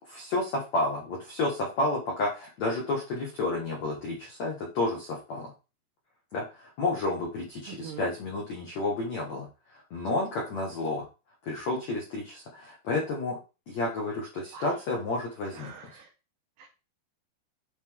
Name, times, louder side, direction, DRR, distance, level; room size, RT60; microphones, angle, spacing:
voice 1, 0.1-5.5 6.3-9.5 9.9-11.0 11.4-13.4 13.7-15.7, left 2 dB, 80° left, -2 dB, 1.5 m, -31 dB
voice 2, 7.7-8.1 14.5-14.7 15.5-16.1 16.6-16.7, right 8 dB, 80° right, 2 dB, 2.7 m, -44 dB
9.2 x 3.2 x 3.6 m, 0.30 s
omnidirectional pair, 5.4 m